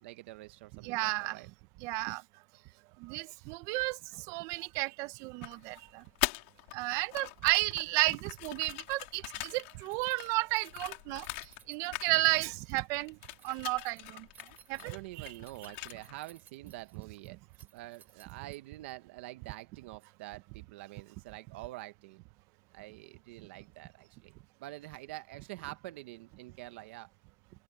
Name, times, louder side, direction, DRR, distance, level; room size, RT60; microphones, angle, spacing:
voice 1, 0.0-1.5 12.1-12.5 14.7-17.4 17.7-22.2 22.7-27.1, right 18 dB, 85° right, 1.0 m, -47 dB
voice 2, 0.8-1.4 1.8-2.2 3.0-4.0 4.3-6.0 6.7-11.3 11.7-13.1 13.4-14.2 14.7-15.3, right 22 dB, 60° right, 0.8 m, -32 dB
sound 1, 5.4-6.8 7.0-11.7 11.9-12.5 12.8-16.2, left 23 dB, 75° left, 2.9 m, -41 dB
Keys jangling, 9.9-18.9, right 9 dB, 30° right, 6.7 m, -61 dB
open air
supercardioid pair, 145°, 6 cm